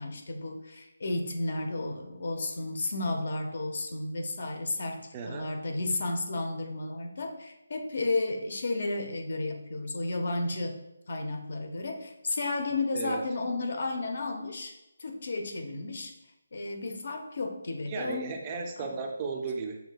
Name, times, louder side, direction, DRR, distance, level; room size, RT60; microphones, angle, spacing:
voice 1, 0.0-10.8 11.1-14.7 15.0-16.1 16.5-18.4 18.8-18.9, left 2 dB, 55° left, 4 dB, 0.7 m, -33 dB
voice 2, 5.1-5.5 12.9-13.2 17.9-19.8, right 4 dB, 20° right, 3 dB, 0.4 m, -35 dB
6.8 x 3.5 x 2.2 m, 0.92 s
figure-of-eight pair, 165°, 0 cm